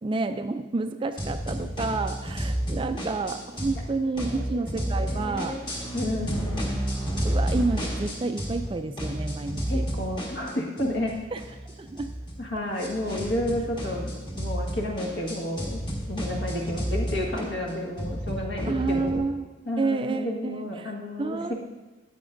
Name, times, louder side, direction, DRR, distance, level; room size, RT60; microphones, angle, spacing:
voice 1, 0.0-5.6 7.2-9.8 11.3-11.4 11.7-12.1 18.6-19.5 19.8-20.9 21.2-21.5, right 3 dB, 25° right, 8 dB, 0.3 m, -29 dB
sound 1, 1.2-3.8 4.1-8.7 9.0-19.2, equal, 25° left, 1.6 m, -31 dB
voice 2, 4.3-6.6 9.7-11.1 12.4-15.8 16.1-19.2 19.6-21.5, left 1 dB, 60° left, 0 dB, 1.6 m, -31 dB
13.5 x 9.4 x 2.6 m, 1.2 s
head